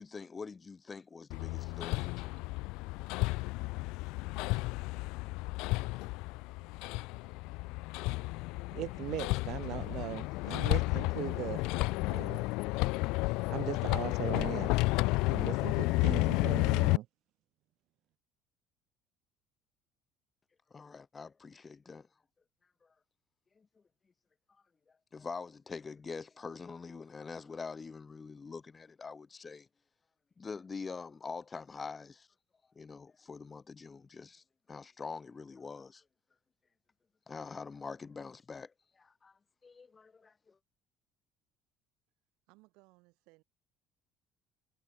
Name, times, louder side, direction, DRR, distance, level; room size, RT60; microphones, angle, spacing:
voice 1, 0.0-2.4 20.7-22.1 23.6-23.7 25.1-29.7 30.4-32.3 32.8-36.0 37.3-40.6, left 5 dB, 15° left, 0.6 m, -45 dB
Hammer, 1.3-17.0, left 23 dB, 70° left, 0.4 m, -32 dB
voice 2, 8.7-11.7 12.1-12.5 13.5-14.7 15.3-17.1, right 15 dB, 50° right, 0.8 m, -39 dB
voice 3, 42.5-43.4, right 25 dB, 75° right, 6.0 m, -63 dB
cardioid pair, 175°, 0 cm